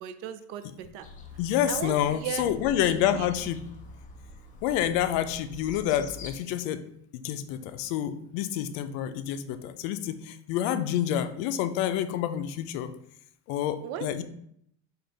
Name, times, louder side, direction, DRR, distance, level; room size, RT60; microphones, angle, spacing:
voice 1, 0.0-1.1 1.7-2.5 2.8-3.3 13.8-14.1, right 10 dB, 70° right, 10 dB, 0.5 m, -37 dB
sound 1, 1.0-6.3, left 2 dB, 25° left, 0.5 m, -46 dB
voice 2, 1.4-3.6 4.6-6.8 7.1-12.9 13.5-14.2, left 10 dB, 85° left, 11 dB, 0.5 m, -28 dB
5.2 x 2.4 x 3.9 m, 0.72 s
cardioid pair, 175°, 32 cm